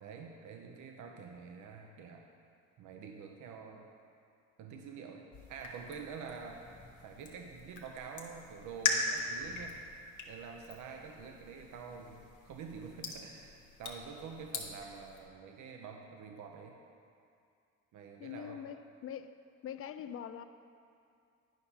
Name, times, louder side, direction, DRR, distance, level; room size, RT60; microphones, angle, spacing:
voice 1, 0.0-2.3 2.8-3.9 4.6-6.6 7.0-9.8 10.3-16.8 17.9-18.6, right 5 dB, 75° right, 0.7 m, -47 dB
sound 1, 5.3-15.2, left 4 dB, 75° left, 1.1 m, -41 dB
voice 2, 18.2-19.4 19.6-20.4, left 9 dB, 50° left, 0.4 m, -43 dB
10.0 x 5.4 x 4.3 m
cardioid pair, 90°, 30 cm